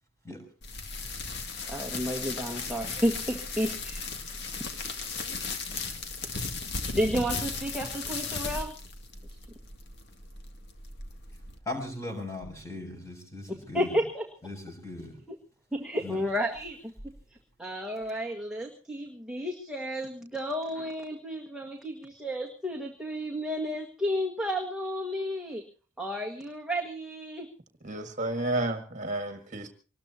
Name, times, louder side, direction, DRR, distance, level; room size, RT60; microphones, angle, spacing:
sound 1, 0.6-11.6, left 4 dB, 55° left, 2.1 m, -36 dB
voice 1, 1.7-4.0 6.9-8.7 13.7-14.2 15.7-16.9 17.6-25.6 26.0-27.5, equal, 5° right, 0 dB, 1.7 m, -32 dB
voice 2, 11.6-14.0 14.4-15.2 16.0-16.2, left 2 dB, 15° left, 3 dB, 6.9 m, -38 dB
voice 3, 27.8-29.7, right 2 dB, 35° right, 6 dB, 1.8 m, -31 dB
24.5 x 20.0 x 2.8 m, 0.37 s
head